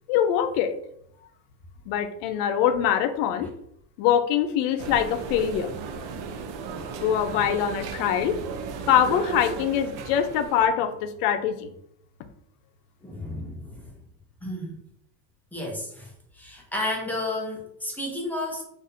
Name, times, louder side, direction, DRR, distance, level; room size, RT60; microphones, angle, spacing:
voice 1, 0.1-0.7 1.9-3.5 4.0-5.7 7.0-8.4 8.9-11.7, left 9 dB, 80° left, 9 dB, 0.6 m, -23 dB
sound 1, 4.8-10.7, right 5 dB, 55° right, 0.5 m, -35 dB
voice 2, 13.0-13.9 14.4-14.8 15.5-18.6, left 1 dB, 5° left, -2 dB, 0.3 m, -32 dB
2.6 x 2.5 x 4.1 m, 0.73 s
cardioid pair, 150°, 46 cm